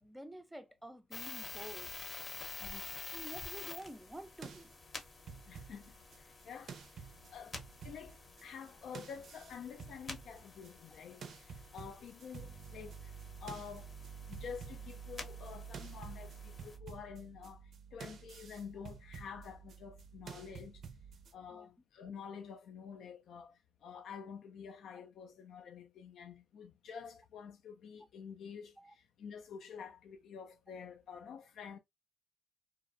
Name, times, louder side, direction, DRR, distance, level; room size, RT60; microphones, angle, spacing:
voice 1, 0.0-1.9 3.1-4.7 21.5-21.7 28.8-28.9, right 1 dB, 5° right, 0.5 m, -49 dB
sound 1, 1.1-16.8, left 4 dB, 35° left, 0.7 m, -49 dB
voice 2, 2.6-2.9 5.5-13.9 14.3-20.8 21.3-31.8, left 7 dB, 70° left, 0.3 m, -49 dB
sound 2, 3.3-6.4 6.7-8.7 8.9-11.0 11.2-21.3, right 6 dB, 60° right, 0.5 m, -50 dB
2.5 x 2.0 x 2.5 m
cardioid pair, 90°, 0 cm